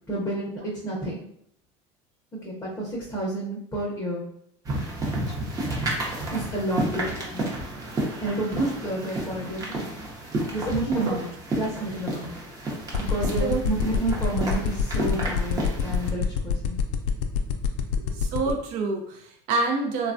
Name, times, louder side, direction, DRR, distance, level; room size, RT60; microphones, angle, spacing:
voice 1, 0.1-1.2 2.4-4.2 5.3-5.4 6.3-7.5 8.2-9.9 10.5-12.3 13.0-16.8, right 1 dB, 15° left, -4 dB, 0.7 m, -30 dB
sound 1, 4.6-16.1, right 1 dB, 25° right, 0.7 m, -31 dB
sound 2, 12.9-18.5, left 8 dB, 80° left, 0.4 m, -25 dB
voice 2, 13.4-14.0 18.1-20.1, right 3 dB, 65° right, 1 dB, 0.5 m, -27 dB
3.2 x 2.2 x 2.5 m, 0.70 s
cardioid pair, 135°, 15 cm